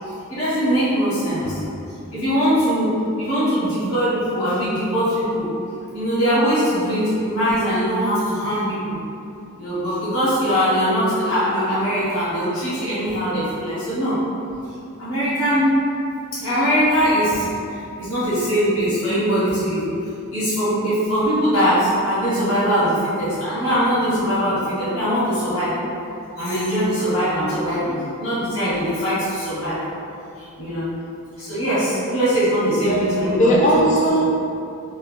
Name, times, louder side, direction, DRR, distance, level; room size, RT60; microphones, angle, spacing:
voice 1, 0.3-1.5 2.1-5.5 5.9-9.0 9.6-14.2 15.0-15.7 16.3-19.9 20.3-25.7 26.4-29.8 30.4-30.9 31.4-33.6, equal, 80° left, 1.0 m, -21 dB
voice 2, 32.8-34.3, equal, 35° left, 0.4 m, -19 dB
3.2 x 2.1 x 2.5 m
head